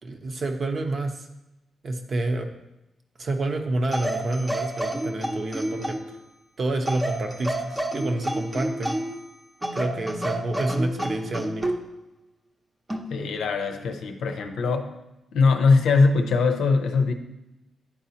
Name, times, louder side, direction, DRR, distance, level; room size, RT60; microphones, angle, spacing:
voice 1, 0.0-1.3 1.8-2.5 3.2-6.0 6.6-8.9 9.7-11.6, right 2 dB, 55° right, 4 dB, 0.8 m, -28 dB
sound 1, 3.9-6.2 6.9-9.2 9.6-11.8 12.9-13.2, right 1 dB, 15° right, 0.7 m, -29 dB
voice 2, 13.1-14.9 15.3-17.1, left 4 dB, 90° left, 5 dB, 0.6 m, -21 dB
9.9 x 4.0 x 2.8 m, 0.94 s
cardioid pair, 80°, 0 cm